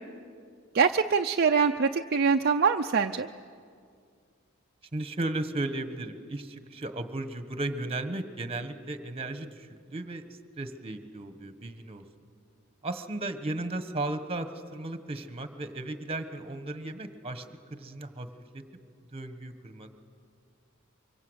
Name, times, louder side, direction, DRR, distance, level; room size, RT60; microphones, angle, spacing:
voice 1, 0.7-3.3, right 5 dB, 50° right, 5 dB, 0.6 m, -24 dB
voice 2, 4.9-10.2 10.6-12.0 12.8-17.4 17.7-18.3 18.5-18.6 19.1-19.9, right 2 dB, 30° right, 9 dB, 1.4 m, -35 dB
24.5 x 24.0 x 8.1 m, 2.2 s
head